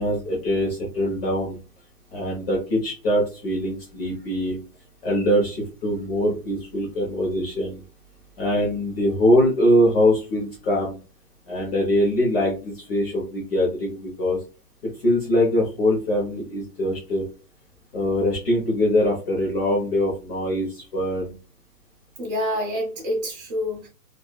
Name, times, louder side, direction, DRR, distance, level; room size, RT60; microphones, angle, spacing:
voice 1, 0.0-1.6 2.1-4.6 5.0-7.8 8.4-11.0 11.5-14.4 15.0-17.2 17.9-21.3, equal, 35° left, -4 dB, 0.9 m, -23 dB
voice 2, 22.2-23.9, equal, 30° right, -7 dB, 0.5 m, -27 dB
2.7 x 2.4 x 2.3 m, 0.34 s
hypercardioid pair, 150°, 49 cm